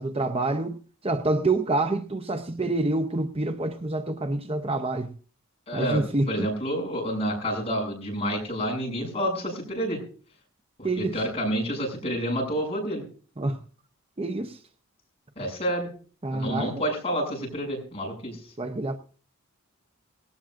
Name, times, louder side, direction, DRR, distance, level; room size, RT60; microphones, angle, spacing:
voice 1, 0.0-5.1 5.7-6.5 10.8-11.2 13.4-13.6 14.2-14.6 16.2-16.8 18.6-19.0, right 2 dB, 25° right, 0.7 m, -27 dB
voice 2, 5.7-10.0 10.8-13.0 15.4-15.9 16.3-18.4, equal, 30° left, 7.0 m, -29 dB
19.5 x 17.5 x 2.5 m
head